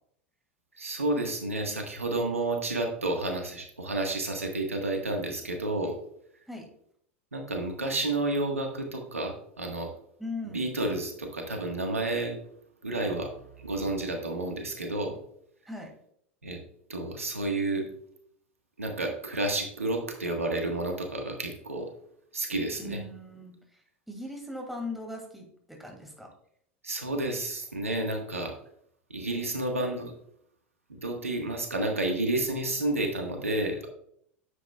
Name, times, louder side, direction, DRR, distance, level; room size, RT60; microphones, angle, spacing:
voice 1, 0.7-6.0 7.3-9.9 10.5-12.4 12.8-15.2 16.4-16.6 16.9-17.9 18.8-21.9 22.3-23.0 26.8-28.5 29.1-30.1 30.9-33.9, right 2 dB, 85° right, 3 dB, 1.4 m, -30 dB
voice 2, 10.2-10.7 15.7-15.9 22.8-26.3, left 2 dB, ahead, 1 dB, 2.4 m, -39 dB
9.8 x 7.3 x 2.3 m, 0.67 s
figure-of-eight pair, 85°, 7 cm